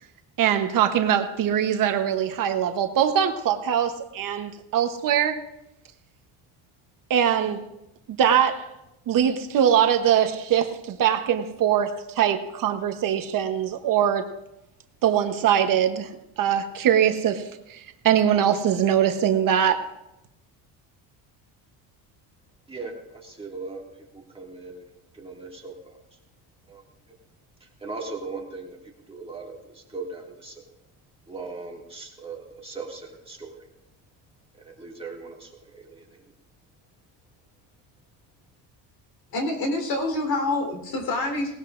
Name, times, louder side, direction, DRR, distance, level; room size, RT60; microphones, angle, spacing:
voice 1, 0.4-5.4 7.1-7.6 8.2-8.7 9.1-11.9 12.1-14.2 15.0-16.1 16.4-17.4 17.7-19.8, right 9 dB, 50° right, 6 dB, 1.0 m, -22 dB
voice 2, 22.7-23.8 24.1-26.0 26.7-26.8 27.6-28.8 29.1-30.6 31.3-33.6 34.6-36.2, right 3 dB, 15° right, -2 dB, 2.1 m, -39 dB
voice 3, 39.3-41.5, left 2 dB, 55° left, 3 dB, 3.8 m, -26 dB
18.5 x 18.5 x 2.5 m, 0.87 s
cardioid pair, 155°, 43 cm